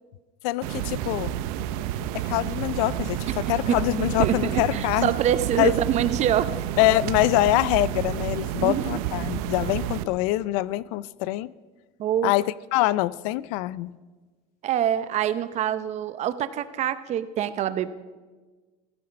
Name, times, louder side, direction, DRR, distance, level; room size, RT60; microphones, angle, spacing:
voice 1, 0.4-1.3 2.1-5.1 5.6-5.7 6.8-11.5 12.2-12.4 12.7-13.9, left 17 dB, 70° left, 20 dB, 0.5 m, -24 dB
sound 1, 0.6-10.0, right 11 dB, 75° right, 0.8 m, -30 dB
voice 2, 3.7-6.5 8.5-9.0 12.0-12.3 14.6-17.9, right 10 dB, 35° right, 13 dB, 0.7 m, -25 dB
16.5 x 14.0 x 5.3 m, 1.3 s
cardioid pair, 145°, 19 cm